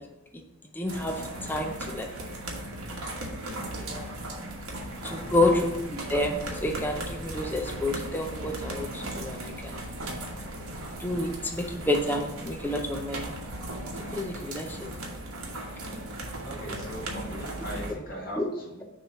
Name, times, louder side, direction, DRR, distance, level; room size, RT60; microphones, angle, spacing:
voice 1, 0.8-1.1 1.4-2.1 3.8-4.0 5.0-9.8 11.0-13.3 14.1-14.8 18.4-18.5, left 1 dB, 10° left, 2 dB, 0.5 m, -29 dB
sound 1, 0.9-17.9, right 1 dB, 75° right, 1.3 m, -37 dB
voice 2, 5.1-5.5 16.4-18.8, right 1 dB, 40° left, -3 dB, 1.7 m, -39 dB
6.4 x 3.1 x 5.4 m, 0.93 s
head